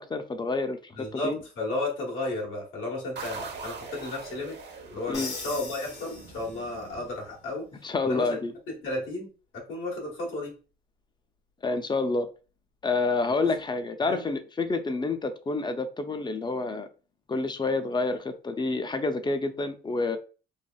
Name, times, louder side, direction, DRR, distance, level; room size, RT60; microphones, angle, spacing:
voice 1, 0.0-1.4 5.1-5.3 7.8-8.5 11.6-12.3 12.8-16.9 17.3-20.2, left 3 dB, 20° left, 0.4 m, -28 dB
voice 2, 0.9-4.6 4.9-7.7 8.0-8.4 8.7-10.5 13.4-13.5 14.0-14.2, left 2 dB, 85° left, 1.4 m, -33 dB
sound 1, 3.2-7.7, right 5 dB, 60° right, 0.8 m, -43 dB
Crash cymbal, 5.1-6.9, left 4 dB, 65° left, 1.2 m, -39 dB
3.2 x 2.4 x 2.2 m
cardioid pair, 90°, 20 cm